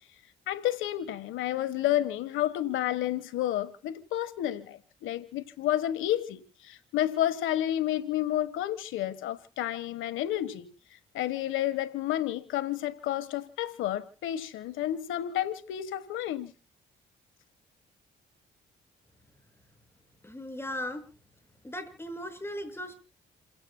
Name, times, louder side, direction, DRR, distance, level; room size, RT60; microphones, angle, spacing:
voice 1, 0.5-10.7 11.1-16.5, left 12 dB, 90° left, 1.3 m, -30 dB
voice 2, 20.2-21.1 21.6-22.9, left 1 dB, 10° left, 5.9 m, -37 dB
29.0 x 16.5 x 2.2 m
cardioid pair, 90°, 20 cm